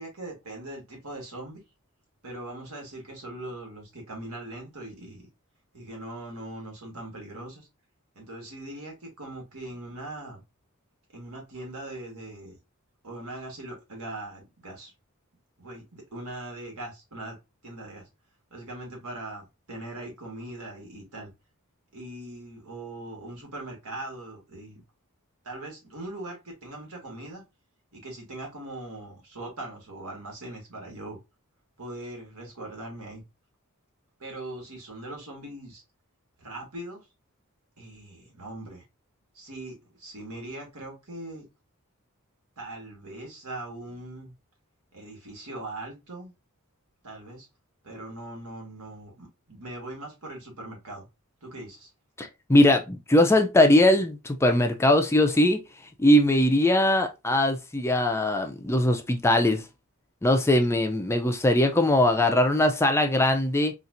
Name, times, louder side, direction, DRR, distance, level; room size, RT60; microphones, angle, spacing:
voice 1, 0.0-1.6 2.2-5.2 5.7-7.7 8.1-10.4 11.1-12.6 13.0-14.9 15.6-17.4 17.6-18.1 18.5-21.3 21.9-24.8 25.4-27.4 27.9-31.2 31.8-33.2 34.2-35.8 36.4-37.1 37.8-38.8 39.3-41.4 42.6-44.3 44.9-46.3 47.0-47.5 47.8-51.1 51.4-51.9, right 1 dB, 80° right, 1.6 m, -40 dB
voice 2, 52.2-55.6 56.0-59.6 60.2-63.7, left 1 dB, 10° left, 0.4 m, -21 dB
4.1 x 2.5 x 2.5 m
head